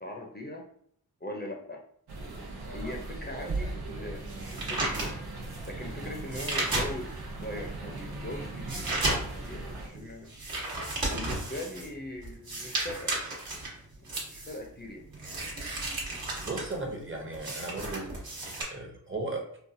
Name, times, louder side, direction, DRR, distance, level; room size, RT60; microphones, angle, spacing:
voice 1, 0.0-0.6 1.2-1.8 2.7-5.2 5.7-10.3 11.0-13.5 14.0-15.1, left 1 dB, 25° left, 0 dB, 0.5 m, -41 dB
sound 1, 2.1-9.9, right 2 dB, 90° right, 0.7 m, -40 dB
sound 2, 3.5-7.3 7.8-18.6, right 2 dB, 70° right, 1.1 m, -34 dB
voice 2, 16.5-18.1 18.7-19.5, right 2 dB, 35° right, 0 dB, 0.8 m, -35 dB
4.0 x 2.3 x 2.6 m, 0.65 s
wide cardioid pair, 85°, 37 cm